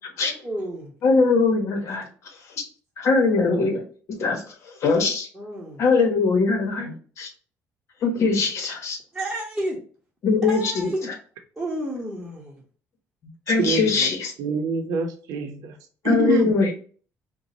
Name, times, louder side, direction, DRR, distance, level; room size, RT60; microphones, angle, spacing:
voice 1, 0.4-0.9 5.3-5.8 8.2-8.4 9.1-9.8 10.4-11.1 11.6-12.6 13.6-13.7, right 1 dB, 5° right, 1.2 m, -31 dB
voice 2, 1.0-2.1 3.0-3.8 4.1-4.4 4.8-5.3 5.8-7.3 8.0-9.0 10.2-10.9 13.5-14.3 16.0-16.7, left 4 dB, 55° left, 1.1 m, -21 dB
voice 3, 13.6-14.1 14.4-15.7 16.0-16.5, right 5 dB, 85° right, 0.8 m, -26 dB
4.8 x 2.3 x 2.8 m
cardioid pair, 125°, 6 cm